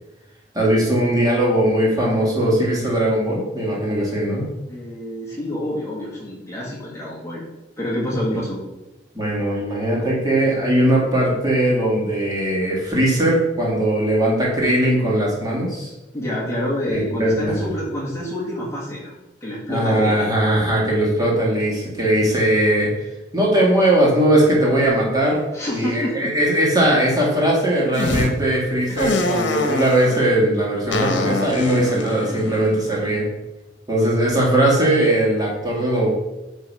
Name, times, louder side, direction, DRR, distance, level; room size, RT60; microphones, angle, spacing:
voice 1, 0.5-4.5 9.1-15.9 16.9-17.7 19.7-25.4 25.7-33.3 33.9-36.1, right 1 dB, 20° right, -4 dB, 2.3 m, -19 dB
voice 2, 4.7-7.4 7.8-8.6 16.1-19.1 19.4-20.3 25.5-26.3 28.9-29.1, left 1 dB, 15° left, -6 dB, 1.8 m, -27 dB
sound 1, 27.9-28.3 29.0-30.2 30.9-33.3, left 2 dB, 85° left, 1.0 m, -25 dB
9.8 x 3.7 x 4.9 m, 1.0 s
head